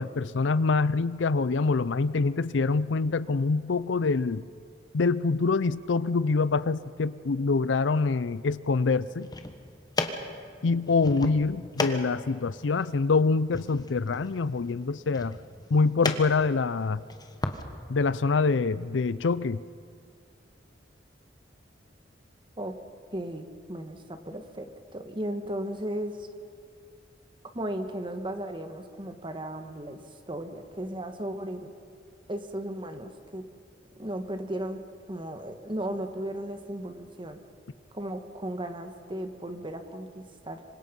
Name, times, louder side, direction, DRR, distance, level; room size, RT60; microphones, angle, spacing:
voice 1, 0.0-4.4 4.9-9.3 10.6-15.4 15.7-17.0 17.9-19.6, left 4 dB, 85° left, 17 dB, 0.5 m, -25 dB
sound 1, 9.1-17.6, left 2 dB, 20° left, 1.3 m, -36 dB
voice 2, 23.1-26.3 27.5-30.0 30.3-31.7 32.3-33.4 34.0-34.8 35.1-37.4 37.9-40.6, right 1 dB, 25° right, 7 dB, 1.6 m, -35 dB
26.5 x 24.5 x 5.4 m, 2.2 s
head